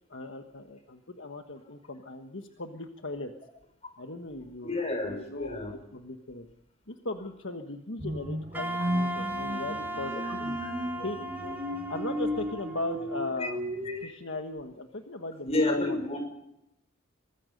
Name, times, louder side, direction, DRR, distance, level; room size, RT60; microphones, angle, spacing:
voice 1, 0.1-3.3 4.0-5.6 5.9-6.5 6.9-10.6 11.0-11.5 11.9-13.7 14.0-16.0, left 2 dB, 65° left, 5 dB, 1.4 m, -38 dB
voice 2, 4.6-5.7 10.1-10.3 13.4-13.5 13.8-14.1 15.5-16.2, left 2 dB, 30° left, 5 dB, 5.8 m, -30 dB
sound 1, 8.0-14.0, equal, 25° right, 7.6 m, -34 dB
Wind instrument woodwind instrument, 8.5-13.6, right 1 dB, 10° right, 2.9 m, -37 dB
24.5 x 20.5 x 5.3 m, 0.84 s
head